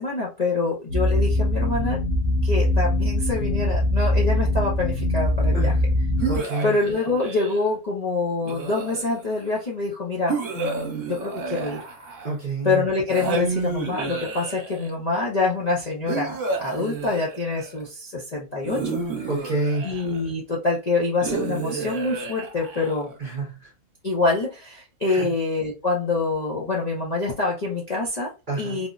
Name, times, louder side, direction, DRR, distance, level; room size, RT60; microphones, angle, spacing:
voice 1, 0.0-2.0 2.4-5.7 6.6-11.8 12.6-18.9 19.2-19.3 19.8-23.1 24.0-28.3 28.6-28.9, left 3 dB, 45° left, -5 dB, 0.5 m, -26 dB
sound 1, 0.9-6.4, left 1 dB, 60° left, 0.9 m, -22 dB
voice 2, 5.5-5.9 6.3-6.7 12.2-12.8 19.3-19.9 23.2-23.7 25.1-25.3 28.5-28.8, right 3 dB, 40° right, -1 dB, 0.7 m, -28 dB
sound 2, 6.2-7.7 8.4-9.4 10.3-12.5 13.1-14.9 16.1-17.8 18.6-20.3 21.2-23.2, right 4 dB, 55° right, 1.2 m, -31 dB
3.4 x 2.1 x 2.4 m, 0.28 s
omnidirectional pair, 1.7 m